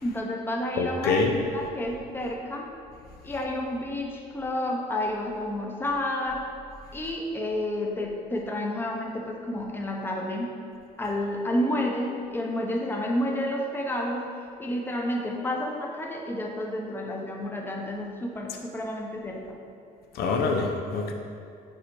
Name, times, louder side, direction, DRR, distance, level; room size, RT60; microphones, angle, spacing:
voice 1, 0.0-2.7 3.2-6.5 6.9-10.5 11.0-14.3 14.6-19.6, left 1 dB, 10° left, 0 dB, 0.8 m, -30 dB
voice 2, 0.8-1.3 20.2-21.1, left 4 dB, 65° left, 3 dB, 0.6 m, -25 dB
5.3 x 4.1 x 4.7 m, 2.5 s
cardioid pair, 110°, 17 cm